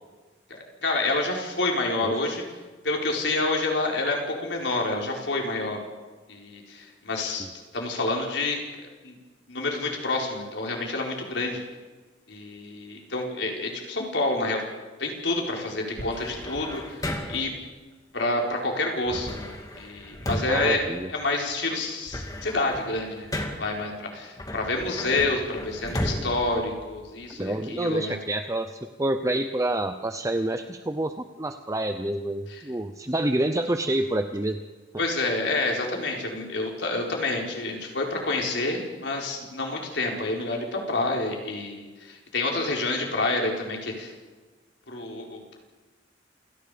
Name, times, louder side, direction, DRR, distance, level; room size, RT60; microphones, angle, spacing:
voice 1, 0.5-2.4 2.8-5.8 6.3-7.5 7.7-8.6 9.0-9.2 9.5-11.6 12.3-14.6 15.0-17.5 18.1-28.2 32.5-32.6 35.0-44.1 44.9-45.6, left 2 dB, 75° left, 0 dB, 4.6 m, -28 dB
voice 2, 2.0-2.3 20.5-21.1 27.4-34.6, right 1 dB, 20° right, 7 dB, 0.8 m, -28 dB
sound 1, 16.0-17.6 19.1-21.5 21.9-23.8 24.4-27.4, left 1 dB, 20° left, 2.2 m, -34 dB
28.0 x 18.5 x 5.1 m, 1.3 s
head